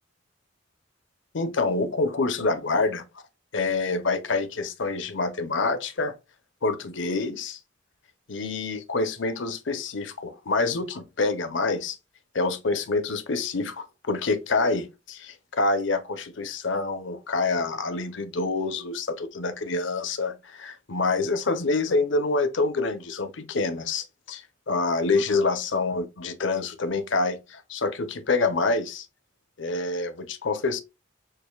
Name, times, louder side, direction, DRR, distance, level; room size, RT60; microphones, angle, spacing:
voice 1, 1.3-3.0 3.5-6.2 6.6-7.6 8.3-12.0 12.3-29.1 29.6-30.8, left 3 dB, 65° left, 0.8 m, -27 dB
6.5 x 2.6 x 2.3 m
head